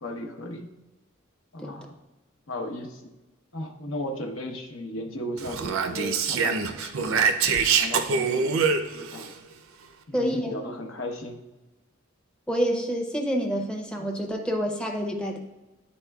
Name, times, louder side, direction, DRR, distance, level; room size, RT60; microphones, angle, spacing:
voice 1, 0.0-0.7 1.5-1.9 2.5-3.1 3.5-7.5 7.7-9.3 10.1-11.4, left 1 dB, 75° left, 3 dB, 0.9 m, -36 dB
Speech, 5.4-9.3, right 5 dB, 80° right, 0.5 m, -25 dB
voice 2, 10.1-10.5 12.5-15.4, equal, 5° left, 0 dB, 0.6 m, -27 dB
10.5 x 4.3 x 2.3 m, 1.1 s
head